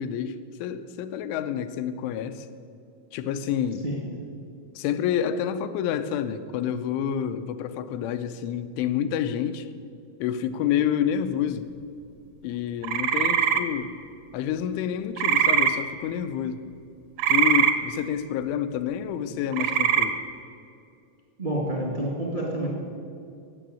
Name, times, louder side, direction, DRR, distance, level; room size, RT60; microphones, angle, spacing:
voice 1, 0.0-2.5 3.1-3.9 4.7-9.7 10.2-11.7 12.4-13.9 14.3-16.6 17.3-20.2, left 9 dB, 90° left, 11 dB, 3.1 m, -28 dB
sound 1, 12.8-13.6 15.2-15.7 17.2-17.7 19.5-20.1, right 8 dB, 90° right, 2.1 m, -21 dB
voice 2, 21.4-22.7, right 1 dB, 55° right, -2 dB, 0.5 m, -28 dB
17.5 x 7.0 x 8.9 m, 2.4 s
omnidirectional pair, 5.4 m